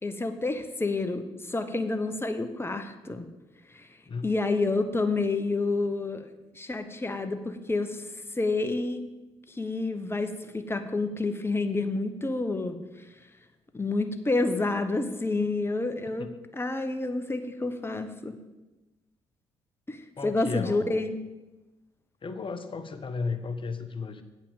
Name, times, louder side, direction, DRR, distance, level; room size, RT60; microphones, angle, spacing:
voice 1, 0.0-3.3 3.7-3.9 4.2-6.3 6.5-8.1 8.3-9.0 9.5-12.8 13.7-18.4 19.9-21.1, left 3 dB, 15° left, 9 dB, 1.1 m, -29 dB
voice 2, 20.2-21.0 22.2-24.2, left 4 dB, 40° left, 9 dB, 1.1 m, -34 dB
8.6 x 5.8 x 7.3 m, 1.1 s
hypercardioid pair, 50°, 14 cm